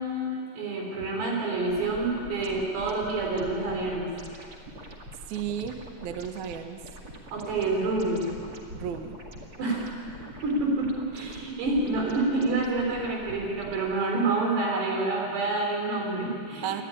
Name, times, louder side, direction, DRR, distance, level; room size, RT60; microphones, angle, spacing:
voice 1, 0.0-4.1 7.3-8.3 9.6-9.9 10.4-16.8, right 2 dB, 85° right, 0 dB, 6.1 m, -28 dB
sound 1, 1.6-14.0, equal, 35° right, 1.6 m, -45 dB
voice 2, 5.3-6.8 8.7-9.2 16.6-16.8, right 9 dB, 65° right, 6 dB, 2.0 m, -33 dB
27.0 x 12.5 x 10.0 m, 2.5 s
omnidirectional pair, 4.8 m